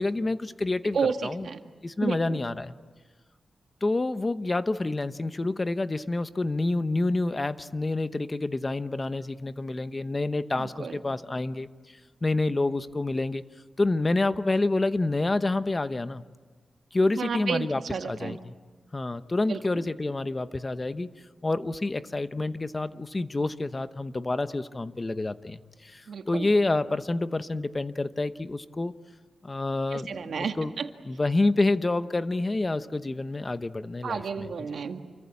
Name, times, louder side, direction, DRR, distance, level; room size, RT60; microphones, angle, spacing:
voice 1, 0.0-1.0 1.2-1.5 1.8-2.8 3.8-11.7 12.2-13.4 13.8-16.2 16.9-17.8 18.1-18.5 18.9-21.1 21.4-28.9 29.4-30.7 31.1-34.2, left 2 dB, 30° left, 12 dB, 0.9 m, -28 dB
voice 2, 0.9-1.6 2.0-2.4 10.6-11.0 17.1-18.4 19.5-19.9 26.1-26.5 29.9-30.9 34.0-35.0, right 5 dB, 80° right, 6 dB, 1.8 m, -31 dB
28.5 x 24.0 x 8.4 m, 1.4 s
wide cardioid pair, 90°, 0 cm